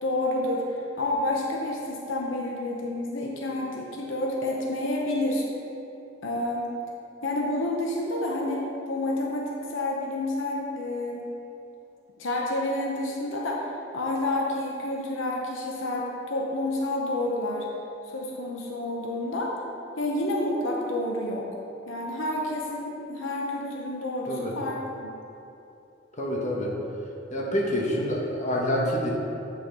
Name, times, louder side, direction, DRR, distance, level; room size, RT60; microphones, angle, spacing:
voice 1, 0.0-5.4 6.2-6.7 7.2-11.3 12.2-13.6 13.9-17.7 18.0-19.6 20.0-21.5 21.9-25.1, left 1 dB, 80° left, -1 dB, 0.9 m, -29 dB
voice 2, 26.2-26.7 27.3-29.1, equal, 40° left, -2 dB, 1.2 m, -27 dB
8.0 x 5.8 x 4.0 m, 2.8 s
head